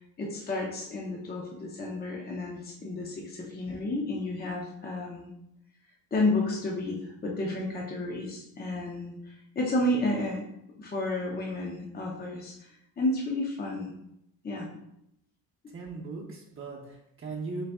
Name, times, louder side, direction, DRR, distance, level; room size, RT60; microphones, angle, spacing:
voice 1, 0.2-5.3 6.1-10.4 10.8-12.7 13.0-13.9 14.4-14.7, left 2 dB, 25° left, -1 dB, 0.8 m, -31 dB
voice 2, 15.7-17.6, right 3 dB, 35° right, -3 dB, 0.8 m, -38 dB
4.0 x 3.3 x 3.5 m, 0.78 s
cardioid pair, 120°, 37 cm